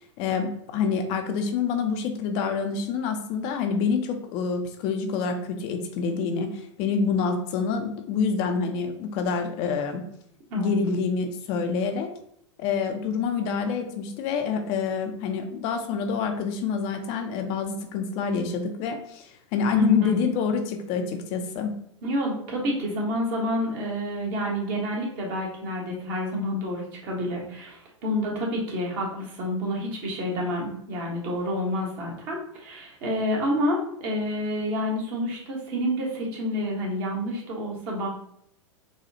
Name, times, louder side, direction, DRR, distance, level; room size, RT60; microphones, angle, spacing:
voice 1, 0.2-10.0 10.6-12.1 12.6-21.7, left 5 dB, 45° left, 5 dB, 0.5 m, -27 dB
voice 2, 19.7-20.2 22.0-38.1, equal, 50° right, -2 dB, 1.4 m, -29 dB
4.1 x 2.3 x 2.8 m, 0.71 s
hypercardioid pair, 100°, 16 cm